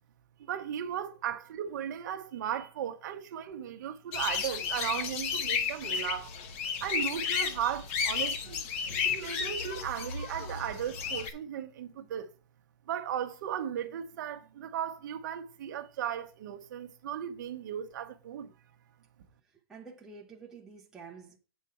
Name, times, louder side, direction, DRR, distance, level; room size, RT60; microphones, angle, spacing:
voice 1, 0.4-6.3 6.8-8.6 9.0-12.3 12.9-18.5, right 9 dB, 45° right, 0.9 m, -36 dB
sound 1, 4.1-11.3, left 6 dB, 30° left, 0.8 m, -33 dB
voice 2, 19.5-21.4, right 5 dB, 5° right, 0.6 m, -49 dB
8.1 x 4.7 x 5.5 m
hypercardioid pair, 175°, 14 cm